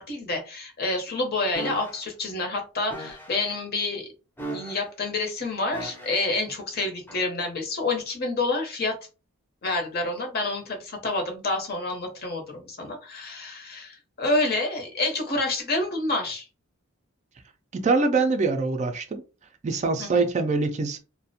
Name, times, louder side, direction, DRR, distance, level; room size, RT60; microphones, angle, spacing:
voice 1, 0.0-4.1 4.5-8.9 9.6-16.5 20.0-20.2, left 2 dB, 50° left, 0.8 m, -28 dB
sound 1, 1.5-2.0 2.9-3.4 4.4-5.0 5.7-6.3 7.1-7.3, right 1 dB, 10° left, 0.6 m, -37 dB
voice 2, 17.7-19.2 19.6-21.0, right 3 dB, 35° right, 0.3 m, -24 dB
2.4 x 2.1 x 2.7 m
head